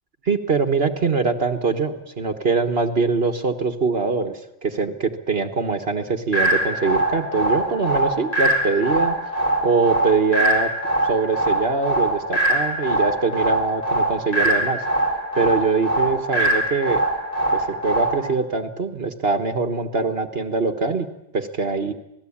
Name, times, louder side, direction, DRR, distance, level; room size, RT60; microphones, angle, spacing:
voice 1, 0.2-9.2 9.6-10.7 11.0-14.8 15.3-17.0 17.5-21.1 21.3-21.9, right 4 dB, 55° right, 8 dB, 1.7 m, -23 dB
sound 1, 6.3-18.3, right 1 dB, 30° left, 4.0 m, -22 dB
27.5 x 19.0 x 8.7 m, 0.85 s
omnidirectional pair, 1.2 m